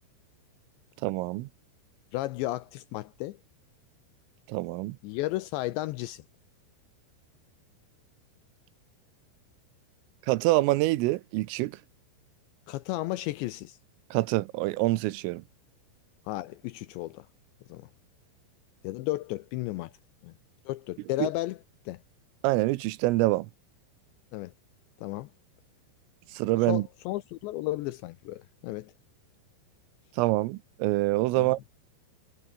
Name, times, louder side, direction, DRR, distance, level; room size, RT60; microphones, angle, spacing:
voice 1, 1.0-1.5 4.5-5.0 10.3-11.8 14.1-15.4 21.2-21.3 22.4-23.5 26.3-26.9 30.2-31.6, right 19 dB, 90° right, 3.6 m, -26 dB
voice 2, 2.1-3.4 5.0-6.2 12.7-13.8 16.3-17.3 17.7-17.9 18.8-19.9 20.2-20.3 20.7-21.6 21.9-22.0 24.3-24.5 25.0-25.3 26.7-28.9 31.4-31.5, left 17 dB, 85° left, 2.6 m, -33 dB
omnidirectional pair, 5.8 m